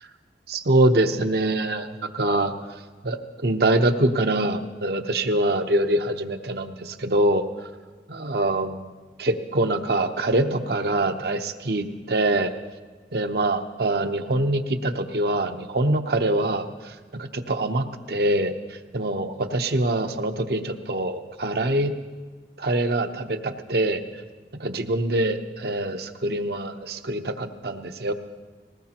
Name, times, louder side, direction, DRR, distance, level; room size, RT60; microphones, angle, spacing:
voice 1, 0.5-2.5 3.0-7.4 8.1-8.9 9.2-12.5 13.1-21.9 22.6-24.0 24.6-28.1, right 1 dB, 65° right, 7 dB, 0.8 m, -24 dB
20.5 x 18.5 x 2.9 m, 1.3 s
head